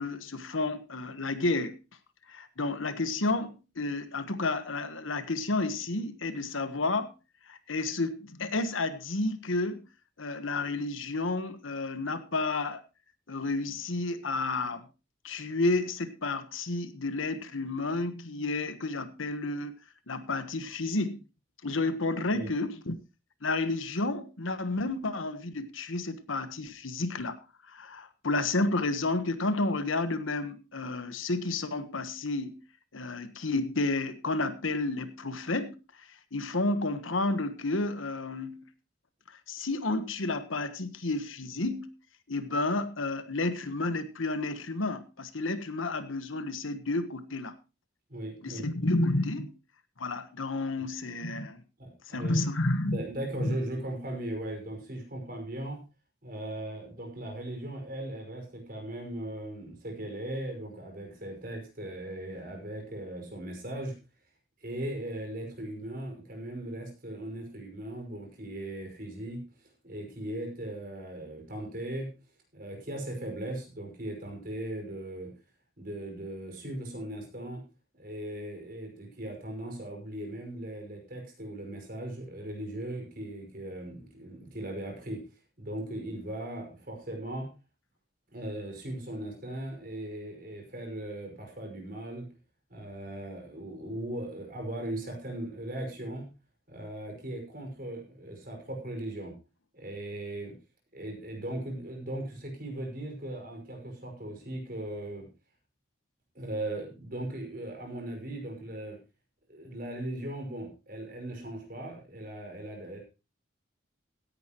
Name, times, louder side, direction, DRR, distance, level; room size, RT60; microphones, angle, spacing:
voice 1, 0.0-1.7 2.3-7.1 7.5-9.9 10.2-12.8 13.3-14.9 15.2-19.7 20.1-21.2 21.6-22.9 23.4-27.4 27.7-32.6 32.9-38.6 39.3-41.9 42.3-47.5 48.4-49.5 50.0-51.6 52.1-53.0 53.4-53.6, left 2 dB, 80° left, 1.3 m, -31 dB
voice 2, 48.1-48.6 51.8-52.4 52.9-55.8 56.2-64.0 64.6-69.4 69.8-72.1 72.5-75.3 75.8-77.6 77.9-85.2 85.6-87.5 88.3-92.3 92.7-96.3 96.7-99.3 99.7-100.6 100.9-105.3 106.3-109.0 109.5-113.0, right 1 dB, 45° right, 5.6 m, -38 dB
16.5 x 10.5 x 3.0 m
head